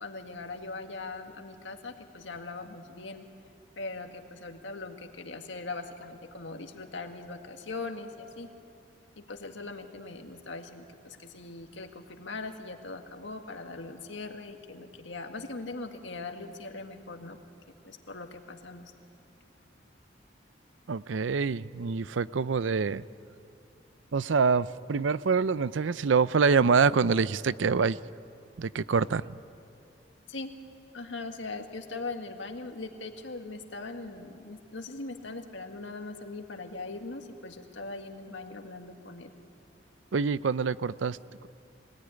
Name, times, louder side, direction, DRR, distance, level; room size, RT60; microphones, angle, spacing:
voice 1, 0.0-3.2 3.8-8.5 9.2-17.4 17.8-18.9 30.3-30.5 30.9-39.3, left 3 dB, 75° left, 4 dB, 1.8 m, -40 dB
voice 2, 20.9-23.0 24.1-28.0 28.6-29.2 40.1-41.2, right 5 dB, 80° right, 17 dB, 0.5 m, -25 dB
24.0 x 18.0 x 9.9 m, 2.6 s
head